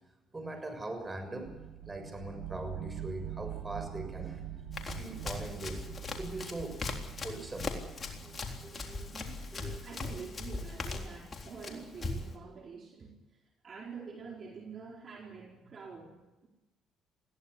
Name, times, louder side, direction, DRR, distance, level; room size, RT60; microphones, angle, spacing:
voice 1, 0.3-1.5 1.9-4.4 5.0-6.9 7.2-7.7 8.2-8.3 8.6-9.1 9.5-9.8, right 2 dB, 20° right, 6 dB, 6.8 m, -41 dB
sound 1, 1.5-11.3, right 11 dB, 75° right, 1.8 m, -45 dB
Run, 4.7-12.4, left 3 dB, 35° left, 3.8 m, -40 dB
voice 2, 8.8-13.1 13.6-16.2, right 5 dB, 45° right, 0 dB, 4.7 m, -46 dB
21.0 x 16.0 x 9.8 m, 1.1 s
supercardioid pair, 75°, 0 cm